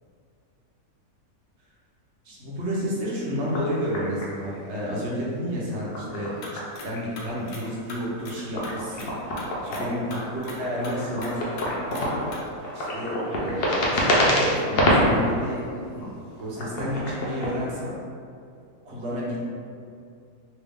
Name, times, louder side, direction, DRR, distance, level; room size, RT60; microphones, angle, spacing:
voice 1, 2.2-6.3 6.8-9.0 9.6-12.2 12.7-15.6 16.0-16.1 16.4-17.9 18.8-19.4, equal, 50° right, -6 dB, 1.0 m, -30 dB
sound 1, 3.4-4.8 5.6-7.0 7.2-15.2 15.8-17.6, left 1 dB, 50° left, 0.7 m, -27 dB
sound 2, 6.4-6.9 7.2-7.6 7.9-9.1 9.4-9.8 10.1-10.6 10.8-11.3 11.6-12.0 12.3-12.4, left 3 dB, 85° left, 1.2 m, -40 dB
3.4 x 3.1 x 3.5 m, 2.4 s
omnidirectional pair, 1.6 m